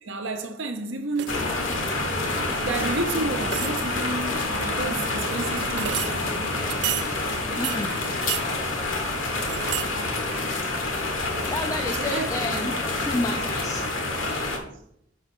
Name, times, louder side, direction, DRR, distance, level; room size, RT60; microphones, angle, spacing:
voice 1, 0.0-1.5 2.6-6.4 10.3-10.6 11.9-12.3 13.5-13.6, right 2 dB, 80° right, 0.9 m, -31 dB
sound 1, 1.2-1.5 2.9-3.0 3.4-4.0 5.0-6.3 6.7-7.1 7.6-8.5 8.9-9.9 10.2-11.0 11.4-11.5, right 13 dB, 60° right, 0.3 m, -32 dB
sound 2, 1.3-14.6, left 2 dB, 90° left, 1.3 m, -27 dB
voice 2, 7.6-8.0 11.5-12.7 13.0-13.8, left 2 dB, 15° left, 0.4 m, -30 dB
5.1 x 5.0 x 6.2 m
head